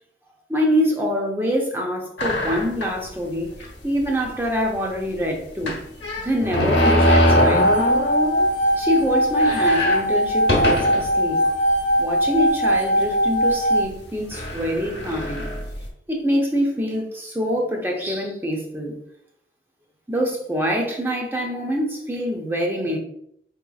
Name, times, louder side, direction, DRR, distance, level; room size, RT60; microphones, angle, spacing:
voice 1, 0.5-5.8 6.2-7.7 8.8-11.5 12.0-15.5 16.1-19.0 20.1-23.0, equal, 10° right, 0 dB, 0.6 m, -25 dB
sound 1, 2.2-3.0 3.6-3.7 4.0-4.1 5.6-8.5 8.9-9.0 9.3-11.1 11.8-11.9 12.8-13.0 13.9-14.0 14.3-15.9, left 1 dB, 85° left, 1.0 m, -22 dB
sound 2, 6.8-13.8, equal, 55° left, 0.6 m, -20 dB
4.8 x 2.9 x 2.3 m, 0.71 s
head